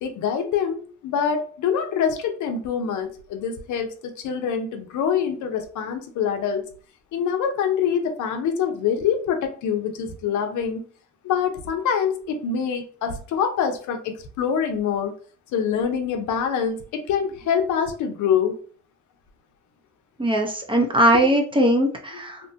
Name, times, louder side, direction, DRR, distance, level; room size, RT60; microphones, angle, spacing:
voice 1, 0.0-6.6 7.1-10.8 11.2-15.1 15.5-18.6 21.1-21.2, left 7 dB, 75° left, 6 dB, 0.6 m, -25 dB
voice 2, 20.2-22.4, right 1 dB, 15° right, 2 dB, 0.6 m, -20 dB
2.8 x 2.1 x 2.6 m, 0.43 s
cardioid pair, 90°, 30 cm